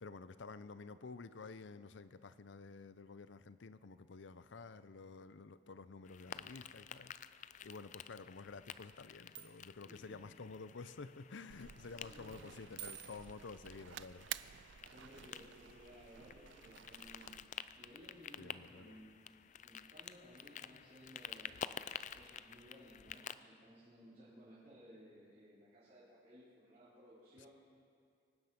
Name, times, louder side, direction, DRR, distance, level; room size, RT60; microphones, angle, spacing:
voice 1, 0.0-14.3 18.4-19.0 27.4-27.5, left 4 dB, 80° left, 14 dB, 0.6 m, -51 dB
sound 1, 6.0-23.3, left 8 dB, 40° left, 0.4 m, -51 dB
sound 2, 6.6-6.7 7.7-9.7 10.1-10.5 11.1-11.4 12.3-14.2 15.3-15.4 16.7-22.3 22.5-22.6 22.9-23.0, right 9 dB, 65° right, 1.7 m, -58 dB
voice 2, 9.9-10.2 11.9-12.5 14.8-19.3 19.6-27.5, equal, 40° right, -12 dB, 4.5 m, -59 dB
sound 3, 11.5-17.4, right 11 dB, 85° right, 0.4 m, -52 dB
24.0 x 9.8 x 6.0 m, 2.3 s
head